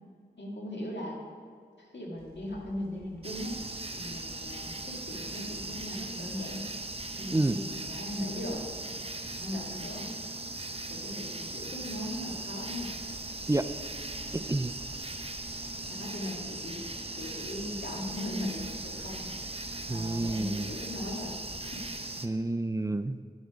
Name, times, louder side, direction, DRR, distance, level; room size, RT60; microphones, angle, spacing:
voice 1, 0.4-1.2 1.8-3.6 4.0-6.7 7.2-8.7 9.4-10.1 10.9-12.9 15.9-16.8 17.2-19.3 19.9-21.3 21.6-21.7, left 1 dB, 80° left, -2 dB, 2.1 m, -38 dB
sound 1, 2.1-21.9, equal, 35° left, 2.6 m, -53 dB
sound 2, 3.2-22.3, right 2 dB, 35° right, 0.8 m, -39 dB
voice 2, 14.3-14.7 19.9-20.7 22.2-23.2, right 2 dB, 20° right, 11 dB, 0.4 m, -29 dB
9.4 x 8.2 x 4.9 m, 2.2 s
wide cardioid pair, 45°, 18 cm